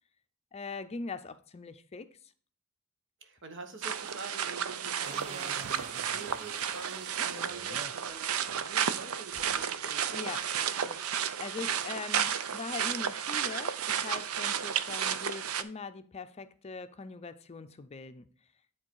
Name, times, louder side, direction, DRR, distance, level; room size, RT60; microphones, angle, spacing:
voice 1, 0.5-2.1 10.1-10.5 11.4-18.3, left 4 dB, 30° left, 0.5 m, -41 dB
voice 2, 3.2-10.2 10.6-11.0 11.6-11.8, right 3 dB, 60° right, 1.3 m, -46 dB
sound 1, 3.8-15.6, right 8 dB, 85° right, 0.6 m, -32 dB
sound 2, 5.0-8.2 8.6-8.7 9.3-10.5, right 3 dB, 35° right, 0.7 m, -47 dB
10.0 x 3.9 x 4.6 m
head